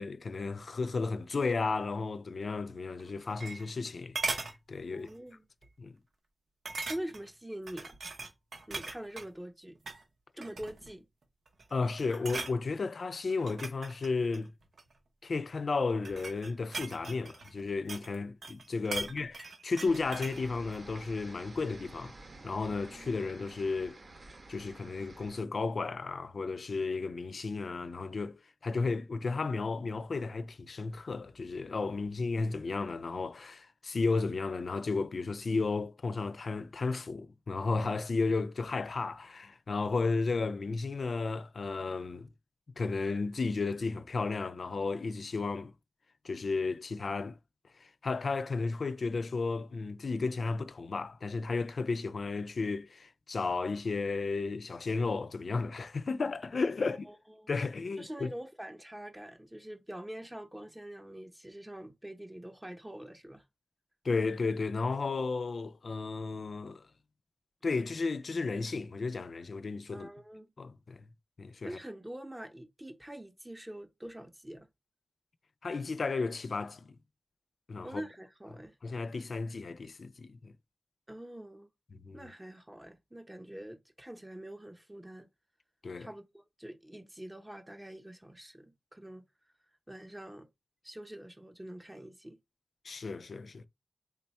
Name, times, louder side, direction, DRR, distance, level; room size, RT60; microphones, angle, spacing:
voice 1, 0.0-5.1 5.8-5.9 11.7-14.5 15.2-22.1 22.4-24.0 24.5-42.3 42.8-45.7 46.2-47.4 47.8-57.1 57.5-58.3 64.0-66.8 67.6-70.1 70.6-71.1 71.4-71.8 75.6-77.0 77.7-77.9 78.8-80.5 82.0-82.3 85.8-86.1 92.8-93.7, left 4 dB, 70° left, 0.3 m, -33 dB
sound 1, 3.0-3.9 4.2-4.6 5.1-5.3 5.6-5.7 6.7-7.3 7.7-9.3 9.8-10.0 10.4-10.9 11.5-11.7 12.0-12.6 13.3-14.9 15.7-18.2 18.4-20.4 20.7-20.8, right 3 dB, 85° right, 0.7 m, -39 dB
voice 2, 4.9-5.5 6.9-7.9 8.7-9.8 10.4-11.1 18.9-19.1 56.8-57.5 58.0-63.4 69.9-70.5 71.6-74.7 77.8-78.7 81.1-81.7 82.1-85.3 86.0-89.2 89.9-90.5 90.8-92.4, right 1 dB, 15° right, 0.6 m, -45 dB
sound 2, 19.8-25.4, right 2 dB, 55° right, 0.7 m, -51 dB
3.4 x 2.2 x 4.1 m
wide cardioid pair, 95°, 0 cm